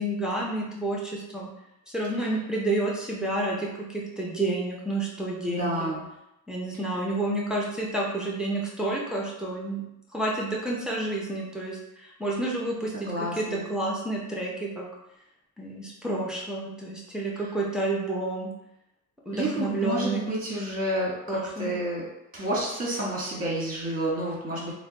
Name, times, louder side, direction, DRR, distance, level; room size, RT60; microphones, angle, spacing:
voice 1, 0.0-1.5 1.9-5.9 6.5-9.8 10.1-14.9 15.6-18.5 19.3-20.3 21.3-21.7, right 2 dB, ahead, -4 dB, 0.7 m, -30 dB
voice 2, 5.5-6.0 12.9-13.6 19.3-22.0 22.3-24.7, right 1 dB, 30° right, -4 dB, 1.4 m, -30 dB
3.9 x 2.2 x 3.9 m, 0.86 s
wide cardioid pair, 140°, 31 cm